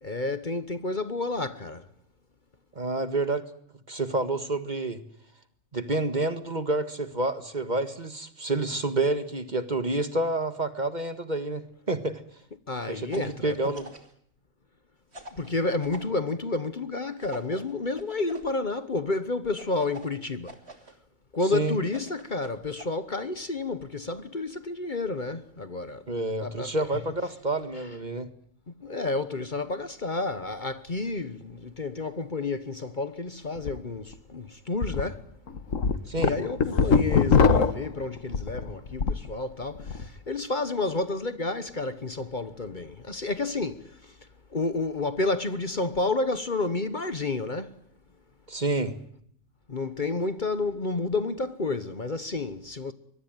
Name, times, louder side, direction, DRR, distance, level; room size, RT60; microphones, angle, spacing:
voice 1, 0.0-1.9 12.7-13.7 15.3-20.6 21.3-26.1 26.4-26.7 28.7-35.3 36.2-44.2 44.5-47.7 49.7-52.9, left 3 dB, 40° left, 1.3 m, -30 dB
voice 2, 2.8-3.5 3.9-5.0 5.7-12.2 12.9-13.9 21.5-21.8 26.1-28.3 36.1-36.4 48.5-48.9, right 2 dB, 35° right, 1.8 m, -28 dB
sound 1, 13.1-14.1 15.1-16.1 17.2-18.5 19.6-20.9 21.8-22.9, right 2 dB, 55° right, 3.2 m, -45 dB
sound 2, 33.6-33.7 34.1-34.2 34.8-35.0 35.5-39.3 39.6-40.1, left 5 dB, 85° left, 1.9 m, -22 dB
24.0 x 23.0 x 9.0 m
omnidirectional pair, 1.3 m